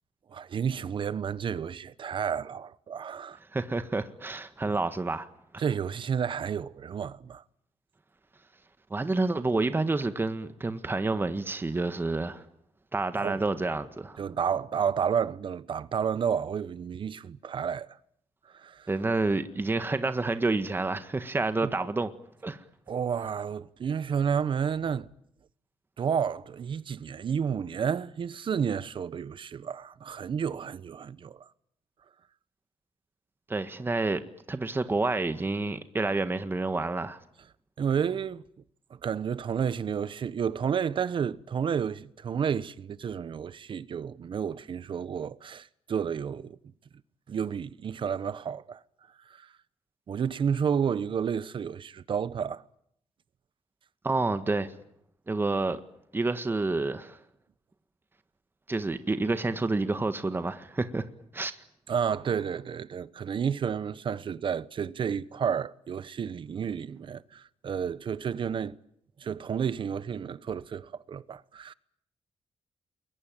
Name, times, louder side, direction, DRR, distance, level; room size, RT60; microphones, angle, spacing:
voice 1, 0.3-3.4 4.7-4.8 5.6-7.4 13.2-13.4 14.2-18.0 18.5-18.9 21.6-21.7 22.9-25.1 26.0-31.5 37.8-38.4 38.9-46.6 47.3-48.8 49.3-49.5 50.1-52.6 61.9-68.7 69.2-71.7, right 7 dB, 55° right, 1.1 m, -31 dB
voice 2, 3.5-5.3 5.5-5.6 8.9-12.4 12.9-14.2 18.9-22.1 22.4-22.6 33.5-34.2 34.5-37.2 54.0-54.7 55.3-55.8 56.1-57.2 58.7-61.0 61.3-61.5, right 3 dB, 20° right, 1.6 m, -29 dB
28.5 x 22.0 x 9.1 m
cardioid pair, 95°, 10 cm